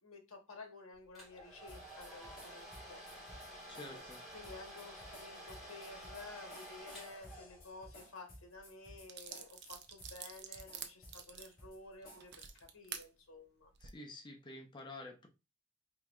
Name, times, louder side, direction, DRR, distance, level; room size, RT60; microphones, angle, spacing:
voice 1, 0.0-3.6 3.9-4.0 4.3-13.7, left 3 dB, 80° left, 3 dB, 1.1 m, -53 dB
Domestic sounds home sounds, 1.1-7.8, equal, ahead, 2.4 m, -51 dB
sound 1, 1.7-12.7, equal, 45° left, 1.7 m, -57 dB
voice 2, 3.7-4.2 13.8-15.3, left 2 dB, 20° left, 3 dB, 0.6 m, -49 dB
sound 2, 8.5-8.6 9.1-13.1 13.6-13.9, right 8 dB, 55° right, 0.6 m, -48 dB
4.5 x 3.6 x 2.3 m, 0.27 s
head